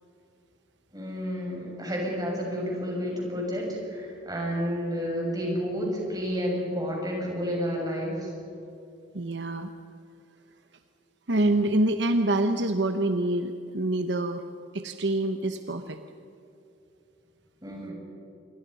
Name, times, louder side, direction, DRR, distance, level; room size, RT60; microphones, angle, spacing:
voice 1, 0.9-8.3 17.6-17.9, equal, 20° right, -1 dB, 7.0 m, -30 dB
voice 2, 9.1-9.7 11.3-14.4 14.7-16.0, right 1 dB, 65° right, 8 dB, 1.0 m, -26 dB
27.0 x 24.5 x 5.6 m, 2.7 s
head